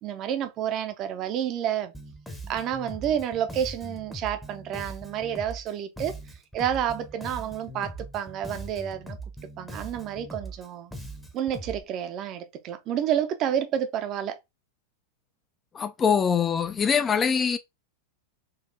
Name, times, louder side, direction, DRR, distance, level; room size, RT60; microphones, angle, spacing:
voice 1, 0.0-1.9 2.5-6.2 6.5-9.2 9.6-10.9 11.3-14.4, right 9 dB, 35° right, 0.5 m, -29 dB
Bass guitar, 1.9-11.8, right 1 dB, 5° left, 0.7 m, -41 dB
voice 2, 15.7-17.6, left 6 dB, 20° left, 0.3 m, -23 dB
3.9 x 2.7 x 2.6 m
figure-of-eight pair, 90°, 0 cm